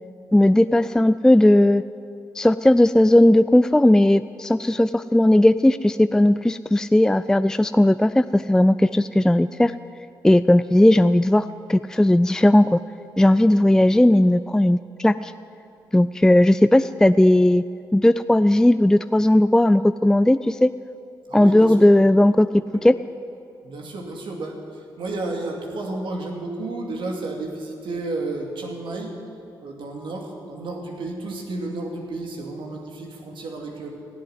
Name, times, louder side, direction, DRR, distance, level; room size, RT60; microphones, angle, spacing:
voice 1, 0.3-1.8 2.4-9.7 10.2-12.8 13.2-15.3 15.9-17.6 17.9-20.7 21.3-22.5 22.8-22.9, left 1 dB, 5° left, 13 dB, 0.3 m, -16 dB
voice 2, 21.3-22.0 23.6-29.2 29.6-33.9, right 2 dB, 70° right, 1 dB, 2.4 m, -32 dB
16.0 x 7.8 x 9.6 m, 2.7 s
cardioid pair, 60°, 9 cm